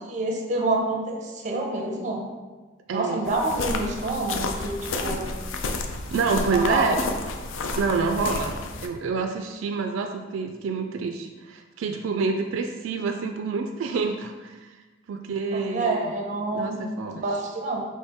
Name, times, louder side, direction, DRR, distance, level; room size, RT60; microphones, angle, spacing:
voice 1, 0.1-2.2 2.9-5.3 6.5-7.0 15.5-16.7 17.2-17.9, right 2 dB, 40° right, 1 dB, 0.6 m, -27 dB
voice 2, 2.9-3.2 6.0-7.0 7.8-14.8 15.1-16.1 16.5-17.4, right 4 dB, 80° right, 5 dB, 0.3 m, -28 dB
sound 1, 3.3-8.9, left 3 dB, 85° left, 0.4 m, -31 dB
4.2 x 3.1 x 3.5 m, 1.3 s
head